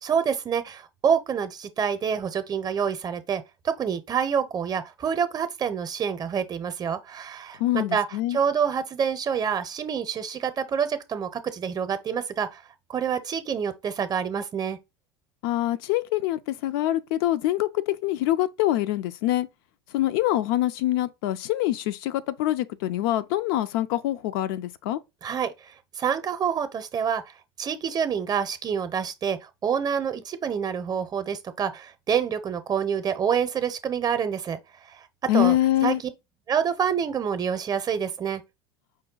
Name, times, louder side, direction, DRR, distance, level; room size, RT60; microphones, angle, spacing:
voice 1, 0.0-8.0 8.3-12.6 12.9-14.8 25.2-25.5 26.0-27.2 27.6-34.6 35.3-35.6 35.8-35.9 36.5-38.4, right 7 dB, 30° right, 0.7 m, -27 dB
voice 2, 7.6-8.4 15.4-19.5 19.9-25.0 35.3-36.0, left 14 dB, 65° left, 0.4 m, -25 dB
5.1 x 2.2 x 3.8 m
hypercardioid pair, 80°, 13 cm